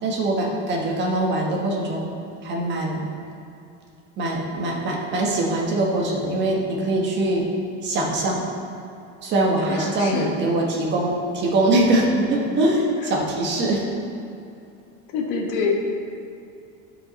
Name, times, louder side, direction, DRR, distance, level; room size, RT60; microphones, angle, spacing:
voice 1, 0.0-2.1 2.4-3.0 4.2-7.4 7.8-8.4 9.2-13.8, right 1 dB, 30° right, -1 dB, 1.4 m, -22 dB
voice 2, 9.6-10.3 13.0-13.1 15.1-15.7, left 5 dB, 55° left, 1 dB, 1.4 m, -26 dB
12.0 x 5.0 x 4.2 m, 2.6 s
cardioid pair, 170°, 35 cm